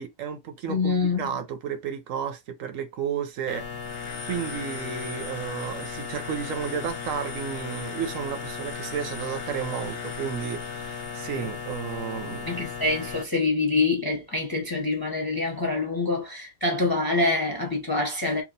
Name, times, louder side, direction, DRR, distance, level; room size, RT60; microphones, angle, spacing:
voice 1, 0.0-3.6 4.3-12.6, right 7 dB, 75° right, 1.1 m, -32 dB
voice 2, 0.7-1.2 11.4-11.5 12.5-18.4, left 3 dB, 20° left, 0.8 m, -25 dB
sound 1, 3.5-13.2, left 6 dB, 55° left, 0.8 m, -36 dB
3.0 x 2.5 x 3.9 m
omnidirectional pair, 1.4 m